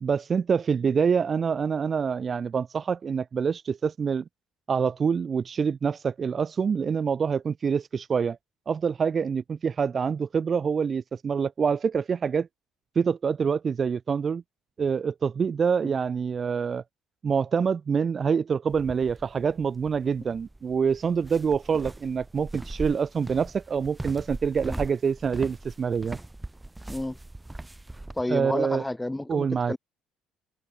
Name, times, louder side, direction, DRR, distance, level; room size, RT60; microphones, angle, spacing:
voice 1, 0.0-4.2 4.7-8.4 8.7-12.5 12.9-14.4 14.8-16.8 17.2-26.2 28.3-28.8 29.3-29.7, right 6 dB, 40° right, 1.4 m, -26 dB
sound 1, 18.7-28.2, right 2 dB, 10° right, 4.3 m, -40 dB
voice 2, 28.1-29.8, left 1 dB, 10° left, 7.4 m, -31 dB
hypercardioid pair, 60°, 0 cm